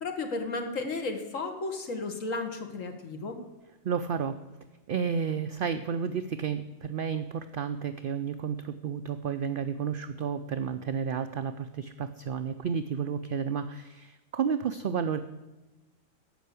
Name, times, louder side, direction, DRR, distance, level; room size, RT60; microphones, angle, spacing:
voice 1, 0.0-3.4, left 3 dB, 70° left, 5 dB, 1.9 m, -33 dB
voice 2, 3.8-4.4 4.9-15.2, right 7 dB, 60° right, 10 dB, 0.6 m, -31 dB
14.0 x 5.5 x 8.3 m, 1.1 s
omnidirectional pair, 1.4 m